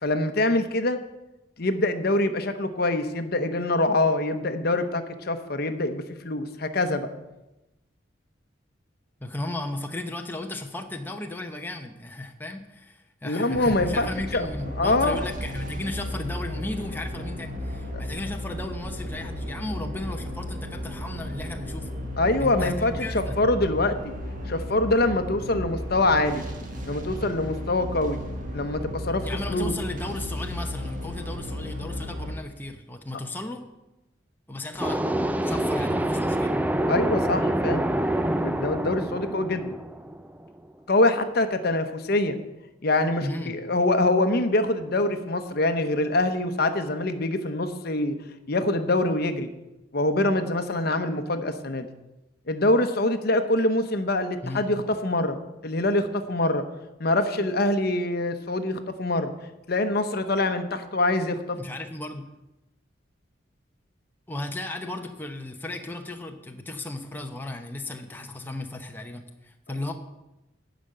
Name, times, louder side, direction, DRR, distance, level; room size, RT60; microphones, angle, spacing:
voice 1, 0.0-1.0 1.6-7.1 13.2-14.1 14.3-14.5 14.8-15.2 22.2-24.1 24.5-26.5 26.9-28.2 28.5-29.2 29.5-29.7 36.9-37.9 38.3-39.8 40.9-42.4 42.8-48.2 48.5-49.5 49.9-51.9 52.5-56.6 57.0-59.3 59.7-61.6, left 2 dB, 55° left, 8 dB, 0.9 m, -24 dB
voice 2, 9.2-21.9 22.4-23.4 29.2-33.6 34.5-36.6 43.2-43.6 54.4-54.6 61.5-62.2 64.3-69.9, left 2 dB, 10° left, 3 dB, 0.8 m, -35 dB
sound 1, 13.5-32.3, equal, 45° right, 1.7 m, -34 dB
sound 2, 34.8-40.5, right 1 dB, 10° right, 0.4 m, -26 dB
12.0 x 5.2 x 8.8 m, 0.98 s
head